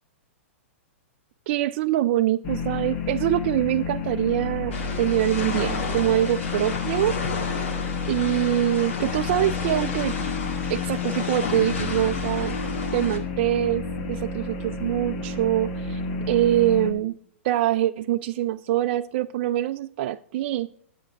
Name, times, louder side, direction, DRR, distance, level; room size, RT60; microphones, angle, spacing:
voice 1, 1.5-7.2 8.1-10.2 10.7-12.6 12.9-13.8 14.1-16.0 16.3-17.1 17.4-20.7, right 13 dB, 50° right, 9 dB, 0.4 m, -24 dB
sound 1, 2.4-16.9, left 5 dB, 45° left, 1.3 m, -30 dB
sound 2, 4.7-13.2, left 3 dB, 70° left, 2.2 m, -33 dB
9.6 x 8.2 x 4.5 m, 0.66 s
hypercardioid pair, 110°, 7 cm